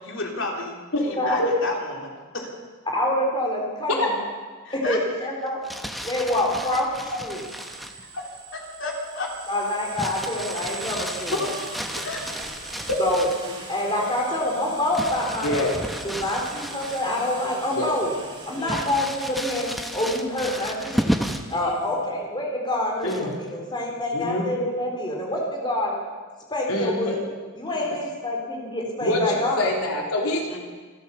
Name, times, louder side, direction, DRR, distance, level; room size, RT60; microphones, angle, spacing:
voice 1, 0.0-0.8 1.0-2.5 4.6-5.0 8.5-9.3 11.8-12.3 16.2-16.3 18.5-18.9 21.6-22.0 27.7-27.9 30.5-30.6, left 2 dB, 55° left, 0 dB, 3.6 m, -33 dB
voice 2, 2.9-4.1 4.7-5.6 6.0-7.4 9.5-11.5 13.0-13.3 13.7-18.1 18.5-26.0 26.5-27.2 27.6-29.6, left 1 dB, 20° left, -1 dB, 3.8 m, -26 dB
Crumpling crinkling, 5.5-8.0 9.9-13.5 14.9-17.3 17.7-17.8 18.7-21.6 23.0-23.5, equal, ahead, 1.0 m, -32 dB
sound 1, 7.3-21.9, right 3 dB, 20° right, 4.6 m, -41 dB
voice 3, 15.4-15.7 17.7-17.9 23.0-23.3 24.1-24.6 26.7-27.2 29.0-30.6, left 2 dB, 75° left, 0 dB, 3.8 m, -25 dB
27.0 x 13.5 x 7.1 m, 1.4 s
head